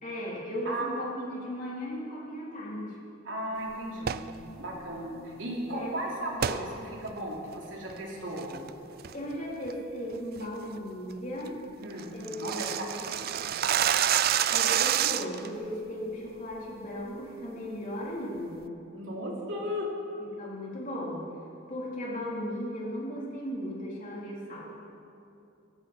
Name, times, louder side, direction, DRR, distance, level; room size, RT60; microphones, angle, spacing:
voice 1, 0.0-3.0 5.7-5.9 9.1-11.6 12.1-13.1 14.5-18.7 20.4-21.2 21.7-24.6, equal, 40° left, -5 dB, 3.6 m, -36 dB
voice 2, 3.2-4.2 4.6-8.5 11.8-13.3 18.9-19.9, equal, 70° right, -3 dB, 3.1 m, -36 dB
sound 1, 4.0-4.3 6.4-6.6 7.1-7.2 7.7-8.0 8.4-8.7 9.0-9.3 9.7-9.8 10.2-10.4 10.8-10.9 11.2-11.3 11.5-11.6 11.8-15.5, right 10 dB, 50° right, 0.4 m, -27 dB
17.0 x 15.0 x 4.4 m, 2.7 s
head